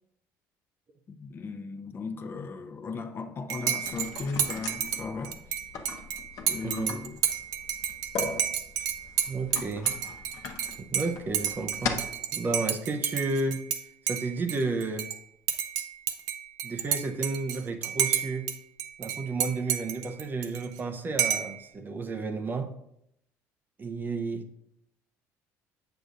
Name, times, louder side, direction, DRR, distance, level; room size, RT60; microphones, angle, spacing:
voice 1, 1.1-5.6 6.5-7.2 8.8-8.9, left 4 dB, 35° left, 0.8 m, -37 dB
Dishes pots and pans / Cutlery silverware / Chink clink, 3.5-13.8 14.1-15.2 15.5-18.5 18.8-20.8 21.2-21.6, right 9 dB, 70° right, 0.6 m, -30 dB
sound 1, 3.8-12.3, left 5 dB, 60° left, 1.0 m, -39 dB
voice 2, 6.6-7.0 9.3-10.0 10.8-12.0 12.3-13.7 14.1-15.1 16.6-18.5 19.0-22.7 23.8-24.5, right 3 dB, 30° right, 0.6 m, -32 dB
7.7 x 6.8 x 2.5 m
cardioid pair, 105°, 6 cm